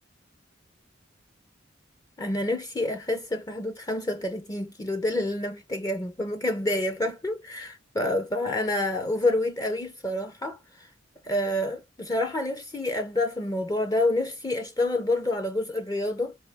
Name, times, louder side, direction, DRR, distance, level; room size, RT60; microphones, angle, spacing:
voice 1, 2.2-10.9 11.2-16.4, left 1 dB, 20° left, 0.5 m, -28 dB
4.3 x 2.2 x 3.3 m
head